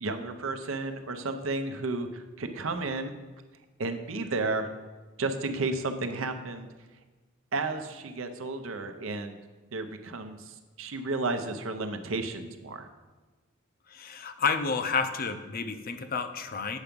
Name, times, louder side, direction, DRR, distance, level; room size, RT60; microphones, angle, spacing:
voice 1, 0.0-3.1 3.8-4.7 5.2-6.7 7.5-9.4 9.7-12.9, right 3 dB, 85° right, 7 dB, 0.7 m, -32 dB
voice 2, 13.9-16.8, left 5 dB, 45° left, 10 dB, 0.6 m, -30 dB
8.2 x 5.8 x 5.2 m, 1.3 s
head